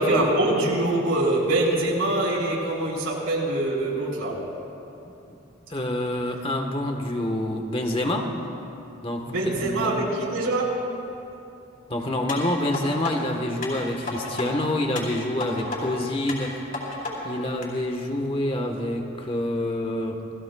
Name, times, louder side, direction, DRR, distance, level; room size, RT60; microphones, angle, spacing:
voice 1, 0.0-4.4 9.3-10.8, right 1 dB, 85° right, -4 dB, 4.7 m, -24 dB
voice 2, 5.7-8.3 9.0-10.1 11.9-16.6 17.2-20.2, left 1 dB, 25° left, 3 dB, 1.3 m, -27 dB
sound 1, 12.3-13.1 13.6-14.5 14.9-15.8 16.3-17.1 17.6-17.7, left 3 dB, 45° left, 4.4 m, -33 dB
28.5 x 19.5 x 2.4 m, 2.8 s
head